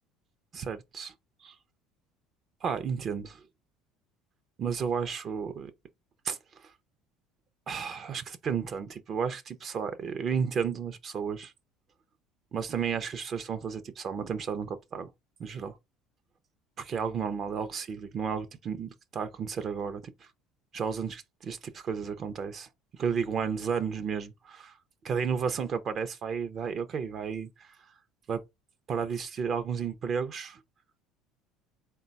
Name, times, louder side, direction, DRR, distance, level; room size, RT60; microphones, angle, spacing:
voice 1, 0.5-1.1 1.4-1.6 2.6-3.4 4.6-5.7 6.2-6.4 6.6-6.7 7.7-11.5 12.5-15.1 15.4-15.8 16.8-20.1 20.7-22.7 22.9-24.7 25.0-27.7 28.3-28.4 28.9-30.6, right 6 dB, 40° right, 0.5 m, -32 dB
3.8 x 2.2 x 3.9 m
supercardioid pair, 105°, 0 cm